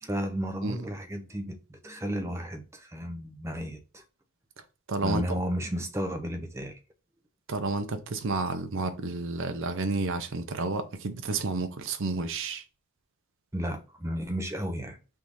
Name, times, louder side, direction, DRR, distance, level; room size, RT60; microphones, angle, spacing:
voice 1, 0.0-4.0 5.0-6.8 13.5-15.0, equal, 10° right, 0.5 m, -33 dB
voice 2, 4.9-5.2 7.5-12.6, right 3 dB, 55° right, 0.6 m, -30 dB
3.5 x 2.7 x 4.6 m
head